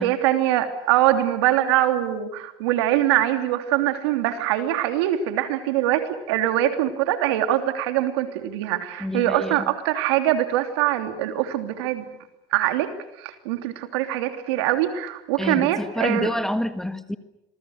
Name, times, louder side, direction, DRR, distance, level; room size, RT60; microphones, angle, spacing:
voice 1, 0.0-12.0 12.5-12.9 13.2-16.3, right 13 dB, 80° right, 7 dB, 3.1 m, -23 dB
voice 2, 9.0-9.7 15.4-17.2, left 1 dB, 5° left, 10 dB, 1.5 m, -27 dB
27.0 x 22.5 x 6.5 m, 0.90 s
supercardioid pair, 115°, 14 cm